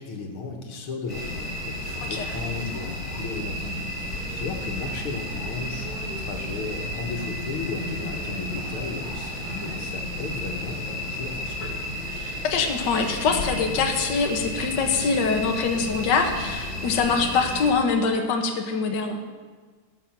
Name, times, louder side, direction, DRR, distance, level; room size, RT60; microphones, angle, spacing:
voice 1, 0.0-11.6, left 4 dB, 90° left, 3 dB, 2.3 m, -35 dB
sound 1, 1.1-17.7, left 1 dB, 40° left, 4.8 m, -32 dB
voice 2, 12.4-19.2, left 5 dB, 60° left, 3 dB, 1.7 m, -24 dB
17.0 x 6.6 x 6.0 m, 1.4 s
omnidirectional pair, 2.3 m